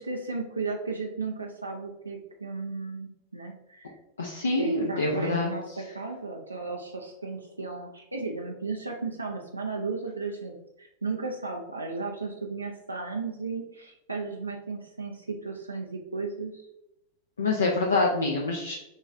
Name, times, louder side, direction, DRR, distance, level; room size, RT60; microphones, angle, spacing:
voice 1, 0.0-4.0 4.5-16.7, right 4 dB, 85° right, 0 dB, 0.5 m, -35 dB
voice 2, 4.2-5.5 17.4-18.7, left 2 dB, 75° left, 0 dB, 0.6 m, -26 dB
6.3 x 3.1 x 2.5 m, 0.89 s
figure-of-eight pair, 90°, 0 cm